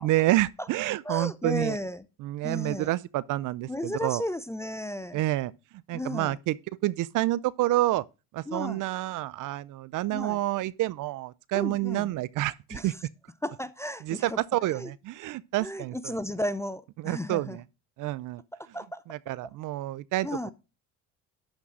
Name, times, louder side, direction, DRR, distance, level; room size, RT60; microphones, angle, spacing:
voice 1, 0.0-1.8 2.2-4.2 5.1-5.5 5.9-6.6 6.8-8.0 8.3-12.9 14.0-16.2 17.0-17.6 18.0-18.4 19.1-20.5, right 16 dB, 55° right, 0.5 m, -28 dB
voice 2, 1.1-2.0 2.4-2.9 3.7-5.2 5.9-6.4 8.5-8.8 10.1-10.4 11.5-12.1 12.7-12.9 13.4-14.4 14.7-14.9 15.6-17.6 18.5-19.0 20.2-20.5, left 1 dB, 5° left, 0.4 m, -34 dB
11.5 x 3.8 x 6.1 m
supercardioid pair, 95°, 39 cm